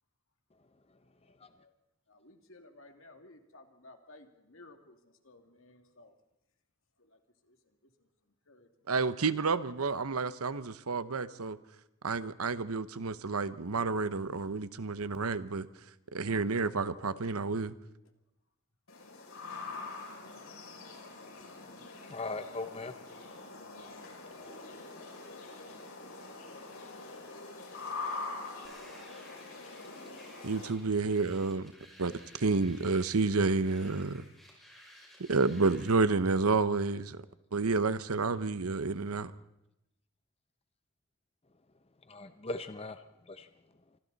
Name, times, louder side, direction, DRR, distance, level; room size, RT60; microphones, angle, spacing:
voice 1, 1.3-1.7 2.1-6.1 7.0-8.1 8.5-8.7 10.4-10.8 20.2-20.4, left 2 dB, 60° left, 2.4 m, -58 dB
voice 2, 8.9-11.6 12.0-15.7 16.1-17.8 30.4-31.7 32.0-34.2 35.2-37.2 37.5-39.3, right 4 dB, 85° right, 0.9 m, -30 dB
sound 1, 18.9-30.7, left 3 dB, 80° left, 6.3 m, -44 dB
voice 3, 22.1-22.9 42.1-43.0 43.3-43.5, left 2 dB, 25° left, 0.7 m, -39 dB
sound 2, 28.6-36.0, equal, ahead, 6.3 m, -56 dB
26.5 x 25.0 x 4.1 m
head